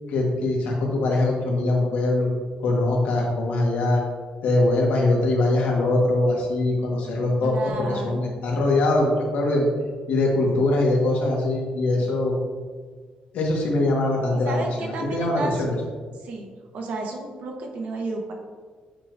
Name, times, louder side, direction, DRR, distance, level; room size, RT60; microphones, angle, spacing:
voice 1, 0.1-2.3 2.6-4.0 4.4-9.7 10.1-12.4 13.3-15.8, left 2 dB, 80° left, -2 dB, 1.5 m, -22 dB
voice 2, 7.4-8.4 14.4-15.6 16.2-16.5 16.7-18.3, right 2 dB, 60° right, 1 dB, 1.1 m, -32 dB
8.4 x 4.7 x 2.6 m, 1.5 s
cardioid pair, 180°, 3 cm